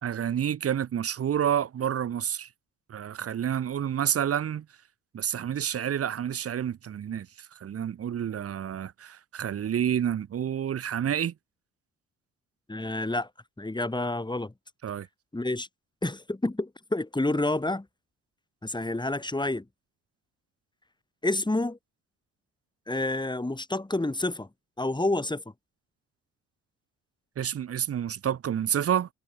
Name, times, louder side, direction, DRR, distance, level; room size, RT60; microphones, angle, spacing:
voice 1, 0.0-2.5 2.9-4.7 5.1-7.3 7.6-11.3 14.8-15.1 27.4-29.1, right 9 dB, 40° right, 1.1 m, -29 dB
voice 2, 12.7-13.3 13.6-14.5 15.3-15.7 16.0-17.9 18.6-19.7 21.2-21.8 22.9-24.5 24.8-25.4, left 2 dB, 10° left, 3.7 m, -29 dB
figure-of-eight pair, 45°, 36 cm